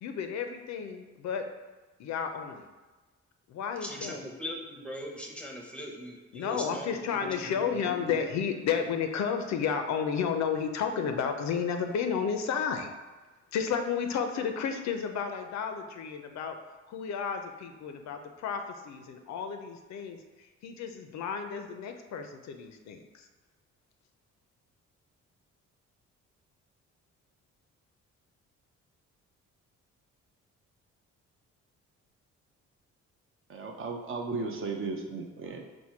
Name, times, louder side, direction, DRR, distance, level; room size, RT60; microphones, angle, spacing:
voice 1, 0.0-1.4 2.0-2.6 3.5-4.2 6.3-12.9 13.5-16.6 16.9-23.3, left 7 dB, 65° left, 6 dB, 0.5 m, -32 dB
voice 2, 3.8-8.1, equal, 5° left, 0 dB, 0.7 m, -40 dB
voice 3, 33.5-35.7, right 3 dB, 45° right, 3 dB, 0.6 m, -35 dB
4.3 x 2.1 x 4.4 m, 1.2 s
cardioid pair, 90°, 30 cm